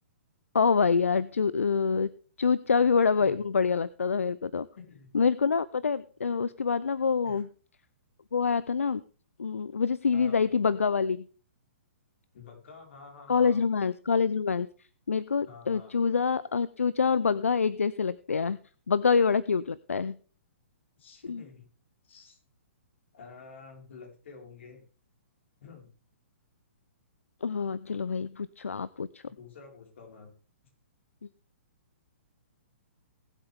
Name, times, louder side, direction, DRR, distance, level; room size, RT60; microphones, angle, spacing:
voice 1, 0.5-2.1 2.4-4.7 5.1-7.5 8.3-9.0 9.4-11.3 13.3-14.7 15.1-18.6 18.9-20.2 21.3-21.4 27.4-29.2, left 5 dB, 80° left, 19 dB, 0.5 m, -26 dB
voice 2, 3.1-3.4 4.7-5.2 7.2-7.4 10.1-10.5 12.3-13.6 15.4-16.0 21.0-21.7 22.0-22.4 23.1-24.8 25.6-25.9 29.2-30.3, left 5 dB, 60° left, 2 dB, 4.5 m, -49 dB
20.0 x 8.1 x 3.5 m, 0.39 s
figure-of-eight pair, 125°, 7 cm